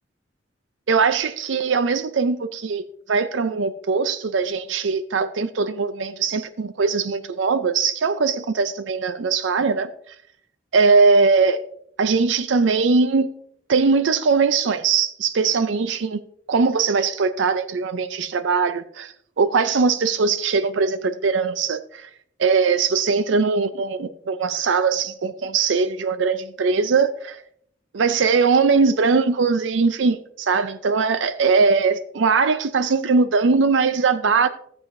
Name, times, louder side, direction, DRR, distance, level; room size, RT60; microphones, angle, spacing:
voice 1, 0.9-2.8 3.1-9.9 10.7-11.6 12.0-13.3 13.7-16.2 16.5-22.1 22.4-27.4 27.9-34.5, right 4 dB, 75° right, 0.5 m, -20 dB
13.5 x 7.5 x 2.6 m
head